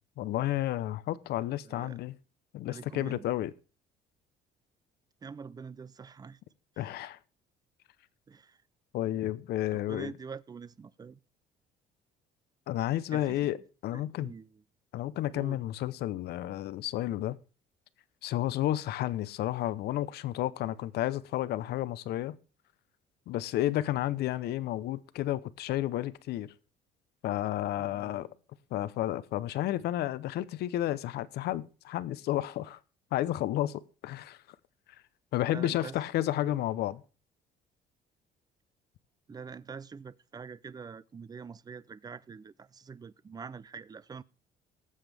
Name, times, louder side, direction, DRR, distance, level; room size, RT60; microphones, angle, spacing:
voice 1, 0.2-2.2 2.5-3.5 6.8-7.2 8.9-10.1 12.7-13.6 13.8-14.3 14.9-17.4 18.2-22.4 23.3-26.5 27.2-28.3 28.7-32.8 33.1-34.4 35.3-37.0, left 14 dB, 70° left, 0.7 m, -31 dB
voice 2, 1.6-2.0 2.7-3.3 5.2-6.4 6.8-7.0 8.3-8.6 9.7-11.2 13.1-13.5 13.9-14.6 15.3-15.6 27.8-28.3 35.5-36.0 36.5-36.6 39.3-44.2, right 5 dB, 25° right, 0.5 m, -45 dB
19.5 x 7.4 x 3.5 m
cardioid pair, 110°, 17 cm